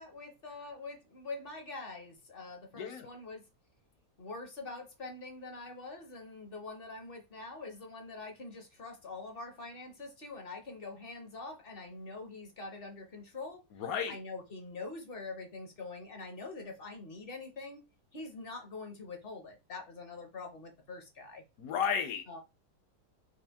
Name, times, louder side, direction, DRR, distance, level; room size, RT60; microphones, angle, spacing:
voice 1, 0.0-3.4 4.2-13.6 14.1-17.8 18.1-21.4 22.3-22.4, left 3 dB, 45° left, 0.8 m, -44 dB
voice 2, 2.8-3.1 13.8-14.2 21.6-22.4, left 7 dB, 65° left, 1.1 m, -33 dB
4.4 x 2.4 x 3.5 m
omnidirectional pair, 1.8 m